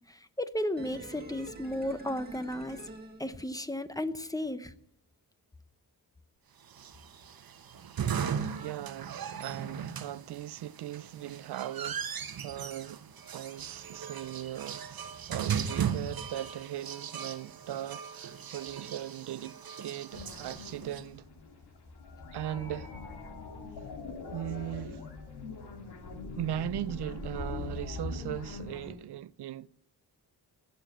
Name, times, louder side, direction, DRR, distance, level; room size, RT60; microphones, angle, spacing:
voice 1, 0.1-2.8 3.2-4.7, left 1 dB, 10° left, 0.9 m, -34 dB
sound 1, 0.8-3.9 4.2-4.3, right 2 dB, 25° right, 1.8 m, -46 dB
sound 2, 6.7-21.0, right 8 dB, 60° right, 1.2 m, -37 dB
voice 2, 8.4-13.0 13.3-21.2 22.3-22.9 24.3-25.0 26.4-29.7, right 12 dB, 80° right, 0.6 m, -39 dB
sound 3, 20.1-28.9, left 3 dB, 80° left, 2.8 m, -42 dB
17.5 x 7.0 x 9.1 m
cardioid pair, 90°, 39 cm